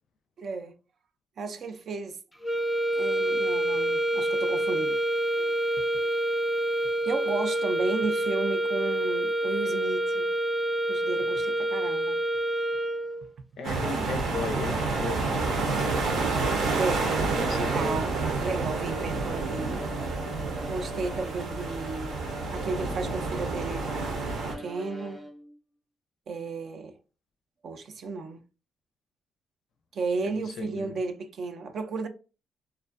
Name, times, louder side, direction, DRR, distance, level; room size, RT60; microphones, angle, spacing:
voice 1, 0.4-0.7 1.4-2.2 2.9-5.0 5.4-5.5 6.0-6.1 7.0-10.3 10.9-12.2 16.8-17.1 17.4-19.9 20.7-22.2 22.5-23.9 24.4-25.2 26.3-27.0 27.6-28.4 29.9-32.1, right 4 dB, 60° right, 0.4 m, -33 dB
sound 1, 2.4-13.3, right 1 dB, 5° left, 0.4 m, -27 dB
voice 2, 13.6-16.3 17.3-18.1 30.2-31.0, left 3 dB, 65° left, 0.5 m, -36 dB
sound 2, 13.6-24.5, right 3 dB, 85° right, 0.8 m, -29 dB
Bowed string instrument, 14.5-25.6, right 1 dB, 15° right, 0.8 m, -42 dB
2.4 x 2.2 x 2.5 m
cardioid pair, 90°, 0 cm